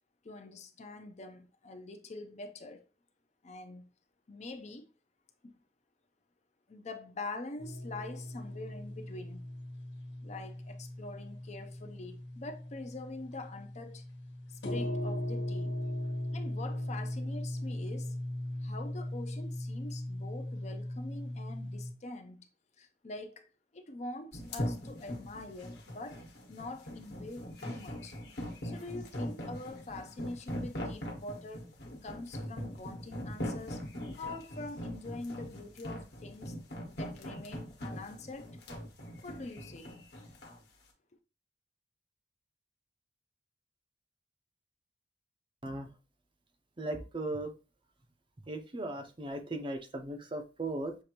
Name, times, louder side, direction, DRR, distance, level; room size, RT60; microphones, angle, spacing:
voice 1, 0.2-2.8 3.4-3.9 4.3-4.9 5.4-5.6 6.7-9.4 10.2-14.0 14.5-15.7 16.3-18.1 18.6-22.5 22.8-23.5 23.7-26.2 26.5-28.1 28.6-31.7 32.0-33.8 34.2-36.5 36.9-38.5 39.2-39.9, left 2 dB, 40° left, 0.5 m, -44 dB
sound 1, 7.6-21.9, left 1 dB, 80° left, 1.2 m, -38 dB
sound 2, 24.3-40.6, equal, 60° left, 1.2 m, -40 dB
voice 2, 46.8-47.5 48.5-51.0, right 2 dB, 25° right, 0.5 m, -37 dB
6.5 x 2.6 x 2.9 m
head